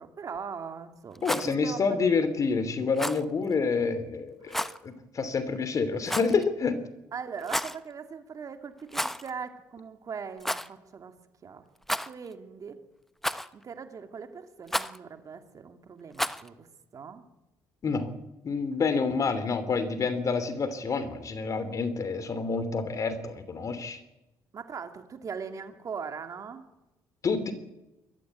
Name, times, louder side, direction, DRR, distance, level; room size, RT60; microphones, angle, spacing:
voice 1, 0.0-1.8 2.1-2.2 4.4-4.7 7.1-11.1 11.4-11.7 12.1-12.8 13.5-16.7 16.9-17.2 24.5-26.6, right 6 dB, 45° right, 6 dB, 2.6 m, -40 dB
Rattle, 1.1-1.5 2.9-3.2 4.5-4.8 6.0-6.4 7.4-7.8 8.9-9.3 9.6-9.7 10.4-10.7 11.8-12.3 13.2-13.6 14.7-15.0 16.1-16.5, equal, 5° left, 1.0 m, -31 dB
voice 2, 1.2-6.8 17.8-18.1 18.4-24.0 27.2-27.5, left 4 dB, 45° left, 12 dB, 3.0 m, -28 dB
21.0 x 14.0 x 9.3 m, 0.95 s
supercardioid pair, 70°, 8 cm